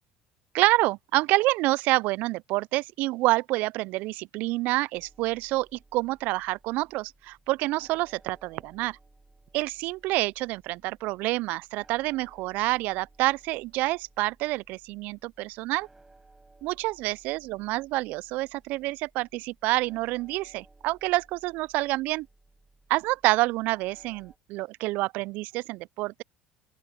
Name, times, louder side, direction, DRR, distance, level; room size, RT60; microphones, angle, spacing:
voice 1, 0.5-9.0 9.5-15.9 16.6-22.3 22.9-26.2, right 20 dB, 70° right, 0.3 m, -27 dB
sound 1, 4.9-24.4, right 2 dB, 15° right, 6.6 m, -59 dB
open air
supercardioid pair, 80°, 3 cm